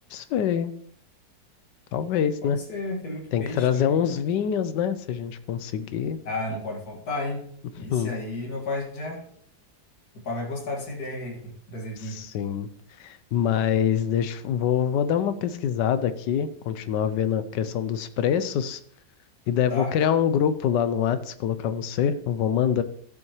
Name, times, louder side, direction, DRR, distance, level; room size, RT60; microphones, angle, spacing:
voice 1, 0.1-0.7 1.9-2.6 3.3-6.2 7.8-8.1 12.0-12.7 13.0-18.8 19.5-22.8, left 8 dB, 75° left, 13 dB, 1.2 m, -25 dB
voice 2, 2.4-4.1 6.2-7.4 7.8-9.2 10.1-12.2 19.7-19.9, left 2 dB, 55° left, 0 dB, 2.5 m, -33 dB
13.0 x 7.7 x 3.1 m, 0.64 s
omnidirectional pair, 2.0 m